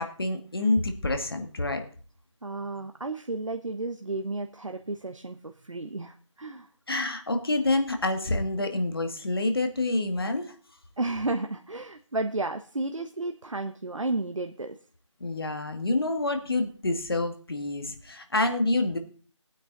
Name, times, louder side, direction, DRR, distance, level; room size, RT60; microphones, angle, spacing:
voice 1, 0.0-1.8 6.9-10.5 15.2-19.0, left 2 dB, 50° left, 6 dB, 2.0 m, -27 dB
voice 2, 2.4-6.7 11.0-14.8, right 2 dB, 80° right, 6 dB, 1.2 m, -32 dB
19.0 x 9.1 x 4.0 m, 0.42 s
figure-of-eight pair, 175°, 16 cm